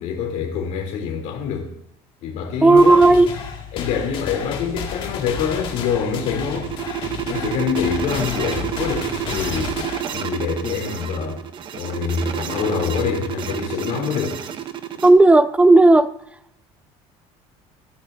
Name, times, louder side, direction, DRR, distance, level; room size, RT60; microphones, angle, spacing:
voice 1, 0.0-1.7 2.2-3.0 3.7-6.9 7.2-9.7 10.1-11.4 11.7-14.4, left 7 dB, 65° left, 3.2 m, -25 dB
voice 2, 2.6-3.3 15.0-16.1, right 2 dB, 10° right, 0.4 m, -12 dB
sound 1, 2.7-10.0, left 6 dB, 40° left, 2.0 m, -32 dB
sound 2, 5.7-15.1, right 10 dB, 40° right, 0.9 m, -29 dB
15.0 x 13.0 x 2.7 m
cardioid pair, 155°, 13 cm